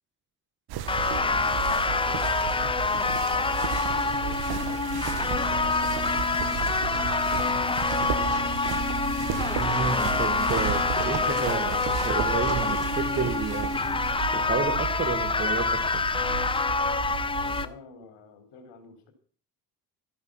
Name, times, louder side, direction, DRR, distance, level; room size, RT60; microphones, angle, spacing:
sound 1, 0.7-17.6, right 9 dB, 50° right, 1.7 m, -33 dB
voice 1, 0.9-7.3 7.7-8.7 17.4-19.1, left 4 dB, 60° left, 4.4 m, -50 dB
sound 2, 0.9-17.7, left 4 dB, 10° left, 0.7 m, -26 dB
sound 3, 4.8-11.3, left 6 dB, 40° left, 2.8 m, -39 dB
voice 2, 9.6-14.1 14.3-16.1, right 5 dB, 25° right, 1.8 m, -31 dB
14.0 x 11.0 x 6.1 m
figure-of-eight pair, 50°, 48 cm